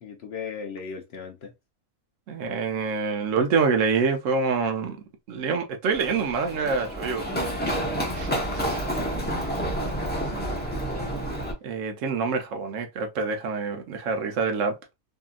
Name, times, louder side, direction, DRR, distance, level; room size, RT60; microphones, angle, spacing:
voice 1, 0.0-1.5 9.2-10.2, left 6 dB, 65° left, 0.7 m, -38 dB
voice 2, 2.3-5.0 5.3-7.4 8.1-8.6 10.3-10.5 11.6-14.7, right 5 dB, 70° right, 1.0 m, -26 dB
Run, 5.9-11.5, equal, 10° left, 0.5 m, -29 dB
2.8 x 2.6 x 2.3 m
omnidirectional pair, 1.5 m